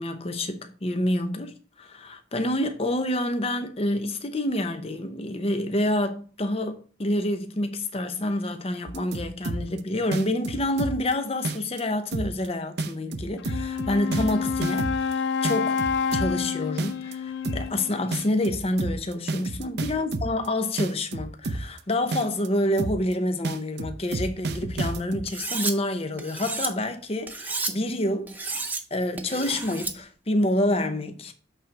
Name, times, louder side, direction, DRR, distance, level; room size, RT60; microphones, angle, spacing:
voice 1, 0.0-15.8 16.1-31.3, left 1 dB, 30° left, 0.7 m, -28 dB
sound 1, 8.9-9.8 10.1-11.1 11.4-11.8 12.1-12.5 12.8-15.1 15.4-16.5 16.8-17.1 17.4-17.8 18.1-20.5 20.8-21.8 22.1-22.5 22.8-23.1 23.4-25.2, right 2 dB, 55° right, 0.6 m, -30 dB
Wind instrument woodwind instrument, 13.4-18.3, left 6 dB, 70° left, 0.4 m, -29 dB
Cutlery silverware, 25.3-25.7 26.2-26.7 27.3-27.7 28.3-28.8 29.2-29.9, right 3 dB, 10° right, 0.6 m, -31 dB
8.2 x 3.9 x 4.6 m
head